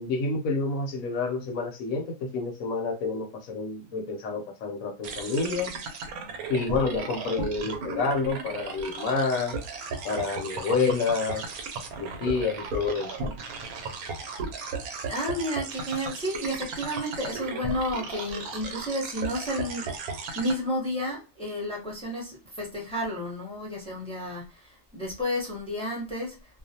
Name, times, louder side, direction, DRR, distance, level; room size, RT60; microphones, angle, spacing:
voice 1, 0.0-5.8 6.5-9.6 10.0-11.5 12.0-13.3, left 4 dB, 70° left, 1.0 m, -28 dB
sound 1, 5.0-20.5, right 4 dB, 80° right, 1.0 m, -36 dB
voice 2, 15.1-19.9 20.3-26.4, equal, 5° left, 0.6 m, -31 dB
2.4 x 2.1 x 2.7 m
omnidirectional pair, 1.5 m